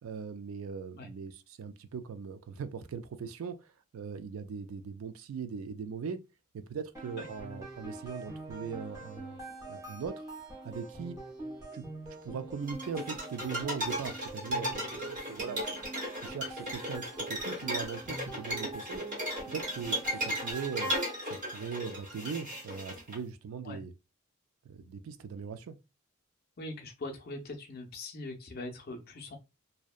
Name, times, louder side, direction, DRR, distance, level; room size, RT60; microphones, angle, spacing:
voice 1, 0.0-6.2 6.5-9.4 9.7-10.1 10.6-11.2 11.7-11.9 12.2-15.6 16.2-19.0 19.4-20.9 21.3-23.9 24.6-25.8, right 6 dB, 75° right, 0.4 m, -40 dB
sound 1, 6.9-21.6, right 2 dB, 15° right, 0.6 m, -45 dB
sound 2, 12.7-23.2, equal, 35° right, 1.0 m, -36 dB
voice 2, 26.6-29.4, left 2 dB, 45° left, 0.4 m, -41 dB
2.7 x 2.1 x 2.3 m
head